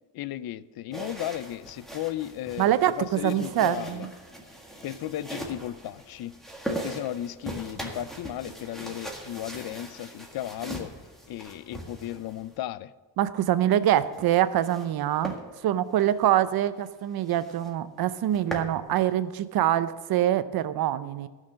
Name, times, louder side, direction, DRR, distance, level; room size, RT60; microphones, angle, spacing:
voice 1, 0.1-4.1 4.8-6.4 6.7-10.9 11.3-12.9, left 13 dB, 65° left, 0.5 m, -35 dB
sound 1, 0.9-12.6 13.9-14.9 15.2-15.4 15.9-16.1 16.5-16.6 16.8-16.9 17.3-17.7 18.1-18.7, right 1 dB, ahead, 1.7 m, -40 dB
voice 2, 2.6-4.1 13.2-15.3 15.6-21.3, right 11 dB, 65° right, 0.7 m, -24 dB
14.0 x 6.5 x 6.4 m
cardioid pair, 135°, 40 cm